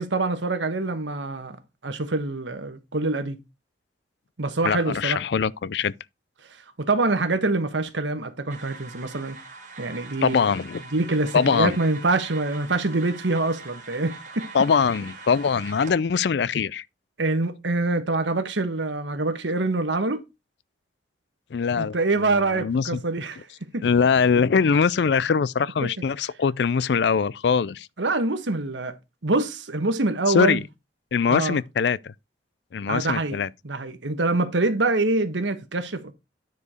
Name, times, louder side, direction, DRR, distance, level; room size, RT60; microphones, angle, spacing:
voice 1, 0.0-1.6 1.8-3.4 4.4-5.2 6.8-9.4 9.8-10.4 10.9-14.5 17.2-20.2 21.8-23.5 23.7-23.9 25.8-25.9 28.0-29.0 29.2-30.6 31.3-31.6 32.9-33.4 33.6-36.1, right 2 dB, 85° right, 1.3 m, -25 dB
voice 2, 4.6-5.9 10.2-10.8 11.3-11.8 14.5-16.8 21.5-22.0 22.3-23.0 23.8-27.9 30.3-30.6 31.1-32.1 32.7-33.5, left 6 dB, 70° left, 0.4 m, -22 dB
sound 1, 8.5-15.9, right 4 dB, 45° right, 2.3 m, -42 dB
9.7 x 4.6 x 4.9 m
head